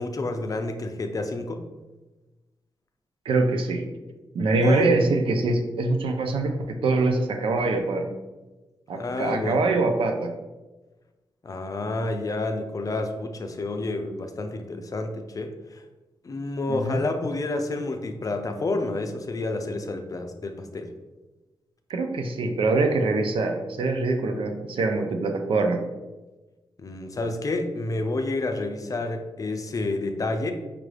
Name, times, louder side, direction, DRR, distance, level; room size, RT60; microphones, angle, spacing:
voice 1, 0.0-1.6 4.6-4.9 9.0-9.7 11.4-15.8 16.2-20.9 26.8-30.5, left 2 dB, 40° left, 6 dB, 0.4 m, -29 dB
voice 2, 3.3-3.9 4.3-8.1 8.9-10.3 16.7-17.0 21.9-25.8, right 3 dB, 85° right, 5 dB, 0.5 m, -24 dB
5.0 x 2.3 x 3.2 m, 1.1 s
cardioid pair, 85°, 9 cm